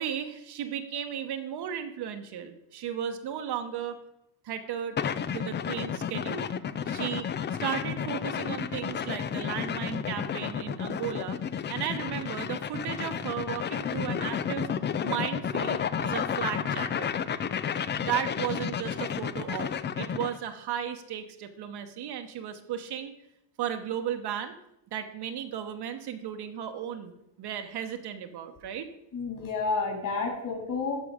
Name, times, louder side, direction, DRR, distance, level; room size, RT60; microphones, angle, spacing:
voice 1, 0.0-4.0 4.4-5.0 5.3-6.5 6.9-7.3 7.6-11.4 11.7-14.7 15.0-17.1 18.0-19.7 20.0-23.1 23.6-24.6 24.9-27.1 27.4-28.9 30.1-30.4, right 9 dB, 55° right, 7 dB, 1.0 m, -35 dB
sound 1, 5.0-20.4, left 7 dB, 25° left, 0.3 m, -31 dB
voice 2, 29.1-30.9, left 4 dB, 45° left, 1 dB, 3.6 m, -30 dB
12.5 x 4.8 x 4.9 m, 0.85 s
cardioid pair, 110°, 46 cm